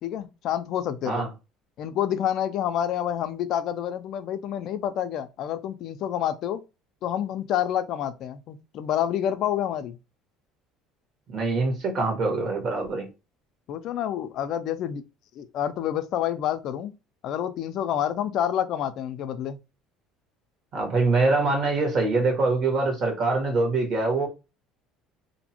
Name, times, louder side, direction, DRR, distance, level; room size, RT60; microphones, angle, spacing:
voice 1, 0.0-1.3 1.8-6.6 7.0-10.0 13.7-15.0 15.4-16.9 17.2-19.6, left 10 dB, 60° left, 0.3 m, -28 dB
voice 2, 11.3-13.1 20.7-24.3, right 3 dB, 50° right, 1.3 m, -24 dB
2.6 x 2.1 x 2.8 m
supercardioid pair, 115°, 0 cm